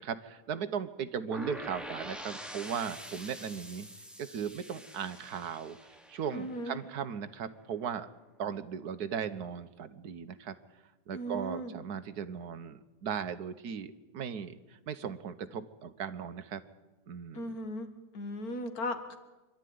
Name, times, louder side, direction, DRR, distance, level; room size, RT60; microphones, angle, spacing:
voice 1, 0.0-3.9 4.2-5.8 6.1-8.1 8.4-10.5 11.1-16.6 17.1-17.6, right 7 dB, 75° right, 11 dB, 1.5 m, -37 dB
sound 1, 1.3-7.2, equal, ahead, 1.2 m, -46 dB
voice 2, 6.3-6.8 11.1-11.7 17.3-17.9 18.1-19.2, equal, 65° left, 7 dB, 2.2 m, -37 dB
25.5 x 12.0 x 9.5 m, 1.2 s
omnidirectional pair, 1.7 m